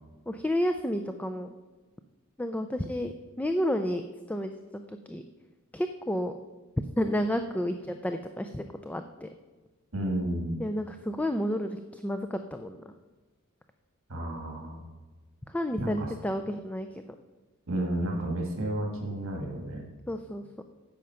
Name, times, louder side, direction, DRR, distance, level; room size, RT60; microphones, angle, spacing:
voice 1, 0.3-1.5 2.4-4.5 5.1-5.2 5.7-6.3 7.0-9.3 10.6-12.8 15.5-17.0 20.1-20.6, equal, 5° left, 7 dB, 0.4 m, -31 dB
voice 2, 9.9-10.6 14.1-14.8 15.8-16.1 17.7-19.8, right 1 dB, 65° right, 1 dB, 1.8 m, -31 dB
10.0 x 7.8 x 5.7 m, 1.3 s
head